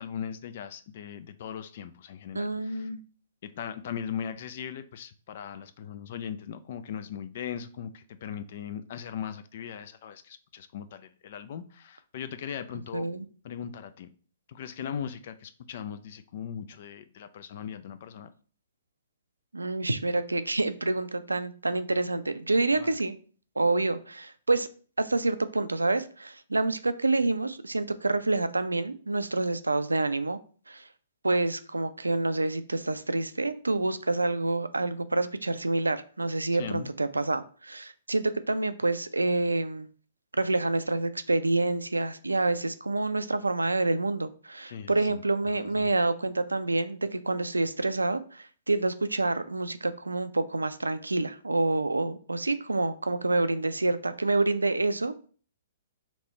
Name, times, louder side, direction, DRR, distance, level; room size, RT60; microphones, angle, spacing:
voice 1, 0.0-2.9 3.4-13.1 13.4-14.1 14.5-18.3 22.8-23.0 36.6-36.9 44.7-45.2 45.5-45.9, left 8 dB, 50° left, 11 dB, 0.3 m, -39 dB
voice 2, 2.3-3.0 12.9-13.2 19.5-23.1 23.6-24.7 25.0-30.4 30.7-30.9 31.2-39.9 40.4-55.3, right 2 dB, 85° right, 12 dB, 0.3 m, -27 dB
3.1 x 2.9 x 4.3 m, 0.41 s
figure-of-eight pair, 120°, 0 cm